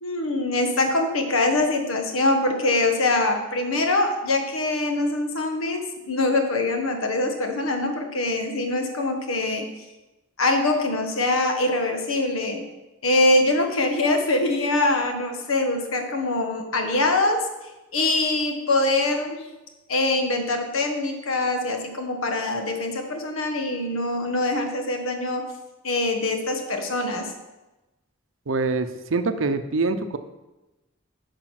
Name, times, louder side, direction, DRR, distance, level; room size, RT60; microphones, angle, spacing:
voice 1, 0.0-9.7 10.4-12.6 13.0-17.5 17.9-19.5 19.9-25.5 25.8-27.3, left 2 dB, 90° left, 5 dB, 1.2 m, -23 dB
voice 2, 28.5-30.2, right 3 dB, 70° right, 9 dB, 0.6 m, -24 dB
9.0 x 5.1 x 5.8 m, 1.1 s
head